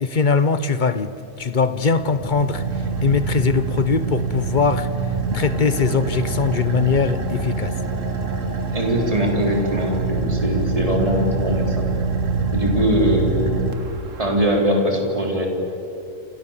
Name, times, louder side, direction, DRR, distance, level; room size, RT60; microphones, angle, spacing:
voice 1, 0.0-2.6 3.0-4.9 5.3-7.7, left 5 dB, 40° left, 12 dB, 1.1 m, -21 dB
Car / Idling, 1.4-14.4, right 4 dB, 70° right, 2.1 m, -25 dB
voice 2, 8.7-11.9 12.5-13.5 14.2-15.5, equal, 25° right, 1 dB, 4.0 m, -21 dB
28.5 x 28.0 x 7.4 m, 2.8 s
omnidirectional pair, 1.4 m